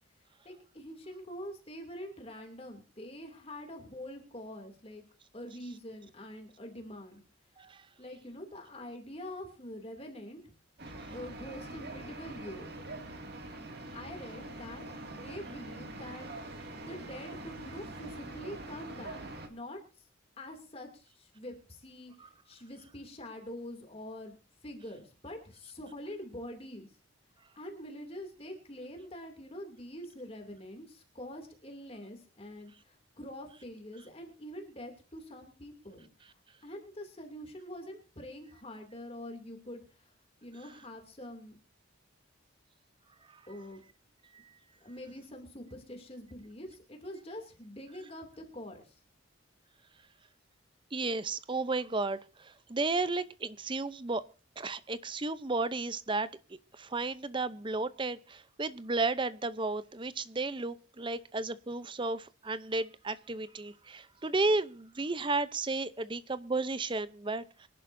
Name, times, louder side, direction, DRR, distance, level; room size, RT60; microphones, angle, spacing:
voice 1, 0.4-5.0 5.3-7.2 8.0-10.4 11.1-12.7 13.9-16.3 16.8-19.2 19.5-20.1 20.4-27.0 27.6-40.1 40.4-41.6 43.5-43.8 44.8-49.0, left 1 dB, 30° left, 3 dB, 2.6 m, -45 dB
sound 1, 10.8-19.5, right 2 dB, 50° right, 2.3 m, -44 dB
voice 2, 50.9-54.2 54.6-56.3 56.7-67.4, right 3 dB, 25° right, 14 dB, 0.6 m, -33 dB
25.0 x 11.0 x 2.7 m, 0.34 s
head